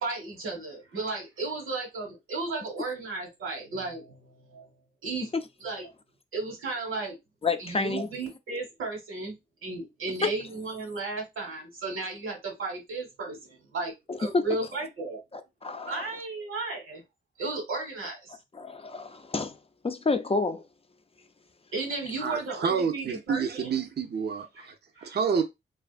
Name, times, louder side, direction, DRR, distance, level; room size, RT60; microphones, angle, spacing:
voice 1, 0.0-4.6 5.0-5.3 5.6-5.9 6.3-7.2 7.6-9.4 9.6-13.9 14.2-15.2 15.9-17.0 17.4-18.4 21.7-23.7 24.6-24.7 25.0-25.3, right 3 dB, 90° right, 1.2 m, -34 dB
voice 2, 7.4-8.1 10.2-10.3 14.1-14.4 15.3-16.0 18.5-19.6 19.8-20.6, left 4 dB, 30° left, 0.4 m, -29 dB
voice 3, 22.2-24.7 25.0-25.4, right 6 dB, 55° right, 0.5 m, -28 dB
2.5 x 2.3 x 2.4 m
cardioid pair, 45°, 21 cm